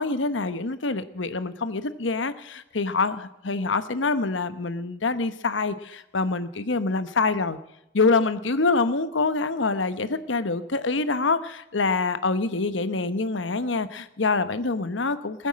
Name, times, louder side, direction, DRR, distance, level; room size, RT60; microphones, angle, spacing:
voice 1, 0.0-7.6 7.9-15.5, left 3 dB, 85° left, 1.0 m, -25 dB
20.0 x 9.2 x 7.5 m
head